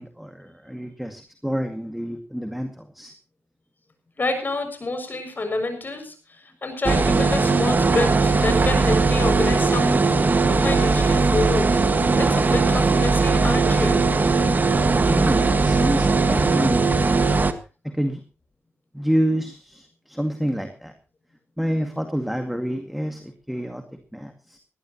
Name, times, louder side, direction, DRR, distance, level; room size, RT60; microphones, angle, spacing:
voice 1, 0.0-3.1 15.0-17.2 17.8-18.2 18.9-20.9 21.6-24.6, equal, ahead, 6 dB, 2.1 m, -28 dB
voice 2, 4.2-6.1 6.6-10.0 10.5-11.8 12.2-14.0, left 2 dB, 40° left, 7 dB, 6.6 m, -27 dB
sound 1, 6.8-17.5, right 3 dB, 35° right, 1.7 m, -19 dB
19.5 x 15.5 x 3.0 m, 0.33 s
cardioid pair, 70°, 5 cm